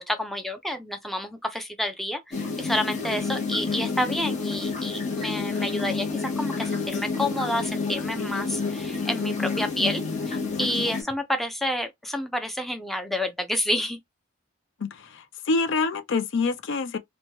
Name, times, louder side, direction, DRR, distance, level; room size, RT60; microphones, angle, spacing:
voice 1, 0.0-14.0, left 1 dB, ahead, 0.4 m, -29 dB
sound 1, 2.3-11.0, left 4 dB, 35° left, 0.8 m, -29 dB
voice 2, 14.8-17.0, left 4 dB, 65° left, 0.5 m, -26 dB
2.9 x 2.2 x 2.8 m
head